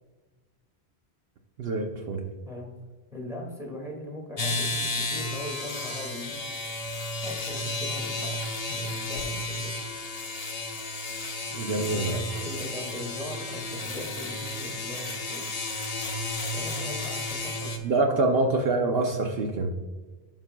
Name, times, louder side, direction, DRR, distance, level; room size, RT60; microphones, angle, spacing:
voice 1, 1.6-2.2 11.5-12.1 17.8-19.7, right 2 dB, 65° right, 3 dB, 0.9 m, -25 dB
voice 2, 3.1-6.4 7.2-9.7 11.7-15.6 16.5-18.2, left 1 dB, 5° right, -2 dB, 1.9 m, -39 dB
sound 1, 4.4-17.8, left 2 dB, 40° left, 0.9 m, -33 dB
11.5 x 5.9 x 2.2 m, 1.3 s
omnidirectional pair, 1.1 m